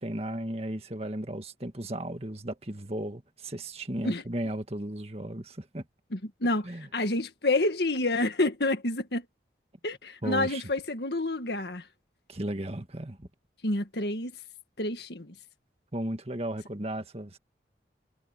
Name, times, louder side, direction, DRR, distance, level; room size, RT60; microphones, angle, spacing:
voice 1, 0.0-5.8 6.6-6.9 10.2-10.6 12.3-13.3 15.9-17.4, right 1 dB, 35° right, 1.8 m, -35 dB
voice 2, 6.1-9.3 9.8-11.9 13.6-14.3 14.8-15.3, left 2 dB, 65° left, 1.8 m, -28 dB
head